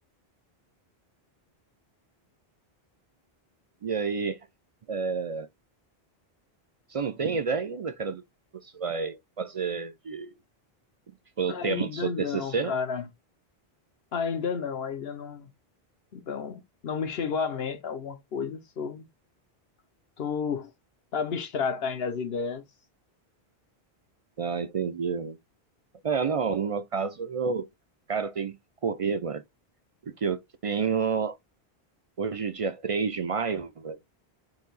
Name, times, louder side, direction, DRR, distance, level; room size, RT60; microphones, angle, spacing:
voice 1, 3.8-4.4 4.9-5.5 6.9-8.2 8.6-10.3 11.4-12.7 24.4-25.4 26.0-27.7 28.1-28.6 28.8-29.4 30.2-31.4 32.2-34.0, right 5 dB, 55° right, 0.4 m, -29 dB
voice 2, 11.5-13.1 14.1-15.5 16.1-19.0 20.2-20.7 21.1-22.6, left 6 dB, 75° left, 1.0 m, -31 dB
4.7 x 2.7 x 3.9 m
omnidirectional pair, 1.1 m